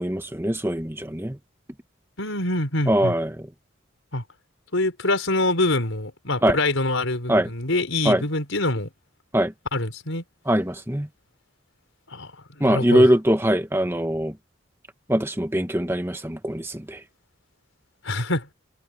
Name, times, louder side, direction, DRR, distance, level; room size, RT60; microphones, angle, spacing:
voice 1, 0.0-1.4 2.9-3.3 6.4-6.6 7.3-7.5 8.0-8.2 9.3-9.5 10.5-11.1 12.6-14.3 15.1-17.0, right 1 dB, 10° right, 1.2 m, -22 dB
voice 2, 2.2-3.1 4.1-4.2 4.7-8.9 9.7-10.2 12.1-12.3 12.6-13.1 18.0-18.5, left 2 dB, 75° left, 4.8 m, -25 dB
head